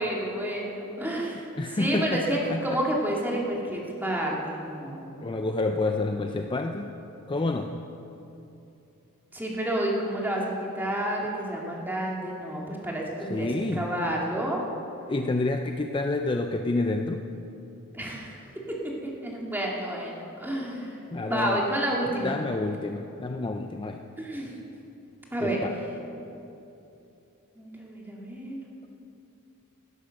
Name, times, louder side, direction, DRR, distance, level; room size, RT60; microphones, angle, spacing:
voice 1, 0.0-1.5 1.8-5.1 9.3-13.5 13.8-14.6 17.9-18.4 19.0-20.9 21.2-22.4 24.2-24.5 25.3-25.7 27.6-28.6, right 1 dB, 10° right, -3 dB, 2.2 m, -30 dB
voice 2, 1.6-2.8 5.2-7.0 7.3-7.8 13.3-13.9 15.1-17.3 21.1-21.6 22.2-24.0 25.4-25.8, left 2 dB, 20° left, 5 dB, 0.5 m, -29 dB
16.5 x 10.0 x 6.5 m, 2.9 s
head